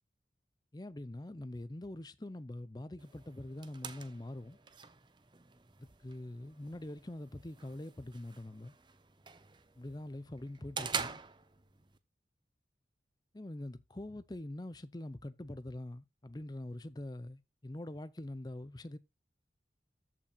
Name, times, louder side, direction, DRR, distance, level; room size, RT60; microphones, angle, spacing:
voice 1, 0.7-4.6 5.8-8.7 9.8-11.2 13.3-19.0, left 1 dB, 20° left, 0.6 m, -44 dB
sound 1, 3.0-12.0, right 6 dB, 25° right, 0.7 m, -46 dB
14.0 x 5.7 x 2.4 m
head